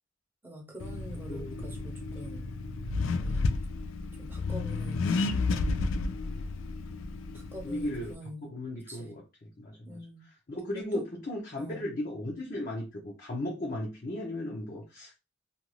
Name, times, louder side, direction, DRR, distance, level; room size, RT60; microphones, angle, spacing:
voice 1, 0.4-2.5 3.2-3.5 4.2-5.1 7.3-8.5 8.9-9.2 9.8-10.2 10.7-11.0 11.6-11.9, equal, 10° right, 0.7 m, -45 dB
Accelerating revving vroom, 0.8-8.1, left 3 dB, 90° left, 0.3 m, -32 dB
voice 2, 1.3-1.7 7.6-8.1 8.5-9.2 9.6-10.0 10.5-15.2, left 1 dB, 45° left, 0.7 m, -36 dB
2.5 x 2.4 x 3.0 m
head